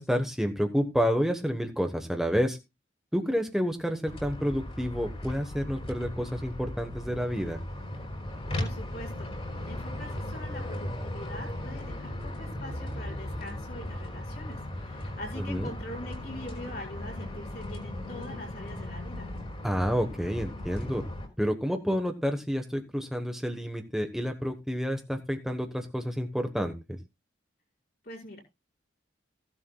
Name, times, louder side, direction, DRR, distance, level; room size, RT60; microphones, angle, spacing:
voice 1, 0.0-2.6 3.1-7.6 15.5-15.7 19.6-21.0 21.4-27.0, equal, ahead, 5 dB, 1.1 m, -29 dB
Walking East River Bank, 4.0-21.3, left 1 dB, 30° left, 4.4 m, -37 dB
voice 2, 8.5-19.3 28.0-28.4, left 1 dB, 55° left, -1 dB, 5.4 m, -43 dB
16.5 x 11.5 x 2.3 m, 0.25 s
head